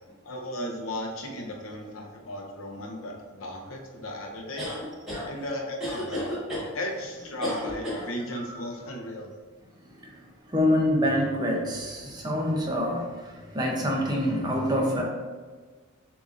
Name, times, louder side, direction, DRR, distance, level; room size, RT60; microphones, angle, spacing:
voice 1, 0.2-4.7 5.3-6.3 6.7-9.3, left 1 dB, 80° left, 0 dB, 0.8 m, -36 dB
sound 1, 4.6-5.2 5.8-6.7 7.4-8.0, left 1 dB, ahead, 1.4 m, -31 dB
voice 2, 9.8-15.0, equal, 20° right, -2 dB, 0.6 m, -26 dB
6.6 x 2.6 x 2.5 m, 1.4 s
head